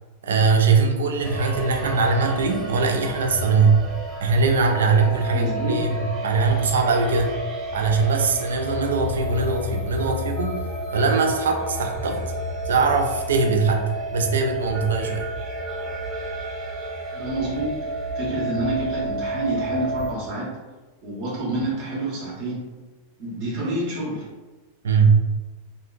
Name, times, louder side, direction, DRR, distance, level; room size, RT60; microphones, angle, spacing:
voice 1, 0.2-3.8 4.2-7.3 7.7-10.6 10.9-12.2 12.7-13.9 14.1-15.2 24.8-25.1, right 4 dB, 65° right, 4 dB, 0.5 m, -21 dB
sound 1, 1.2-20.1, right 1 dB, 25° right, 1.5 m, -31 dB
voice 2, 5.3-5.8 17.1-17.7 18.1-20.5 21.0-22.7 23.2-24.2, right 1 dB, 45° right, -5 dB, 1.4 m, -28 dB
3.6 x 3.4 x 2.4 m, 1.2 s
figure-of-eight pair, 90°, 0 cm